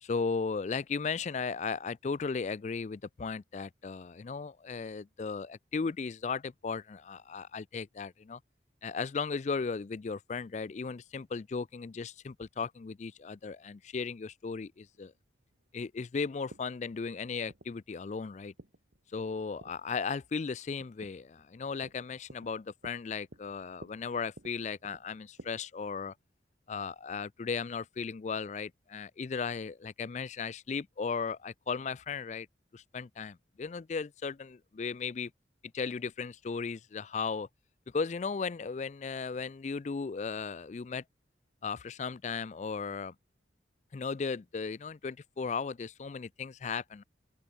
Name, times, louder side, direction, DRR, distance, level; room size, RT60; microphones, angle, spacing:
voice 1, 0.0-8.4 8.8-15.1 15.7-18.5 19.1-26.1 26.7-32.5 32.7-35.3 35.7-37.5 37.9-41.0 41.6-43.1 43.9-47.0, left 5 dB, 40° left, 0.4 m, -36 dB
sound 1, 14.7-25.5, right 1 dB, 70° right, 1.8 m, -55 dB
open air
head